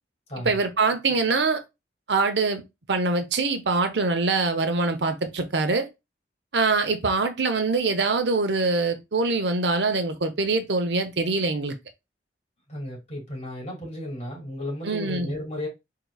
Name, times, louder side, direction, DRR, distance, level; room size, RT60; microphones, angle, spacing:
voice 1, 0.4-1.6 2.1-2.6 2.9-5.9 6.5-11.7 14.8-15.3, right 3 dB, 80° right, 0.8 m, -24 dB
voice 2, 12.7-15.7, left 1 dB, 40° left, 2.5 m, -34 dB
4.6 x 3.8 x 2.3 m
head